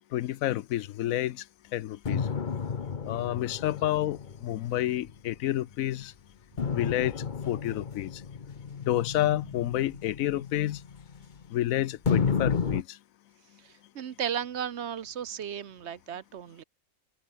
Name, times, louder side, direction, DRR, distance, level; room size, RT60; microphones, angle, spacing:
voice 1, 0.1-1.4 1.7-2.3 3.0-6.1 6.7-7.1 7.5-8.2 8.8-10.8 11.5-13.0, left 14 dB, 80° left, 1.0 m, -29 dB
sound 1, 2.0-5.7 6.6-11.6 12.0-12.8, left 6 dB, 40° left, 1.0 m, -32 dB
voice 2, 13.6-16.6, right 8 dB, 60° right, 1.0 m, -35 dB
omnidirectional pair, 1.4 m